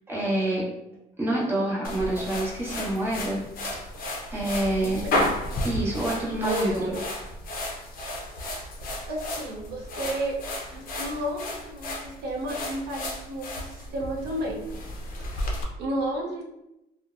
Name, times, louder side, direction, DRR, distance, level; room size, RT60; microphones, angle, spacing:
voice 1, 0.1-0.6 1.2-3.4 4.3-5.1 5.6-6.9, right 1 dB, 15° right, -6 dB, 0.8 m, -27 dB
sound 1, 1.8-15.6, left 1 dB, 55° left, 0.5 m, -33 dB
voice 2, 6.4-7.0 7.9-8.3 9.1-10.4 10.7-14.6 15.4-16.4, right 1 dB, 75° right, 0 dB, 0.5 m, -32 dB
2.6 x 2.0 x 2.4 m, 0.91 s
cardioid pair, 110°, 17 cm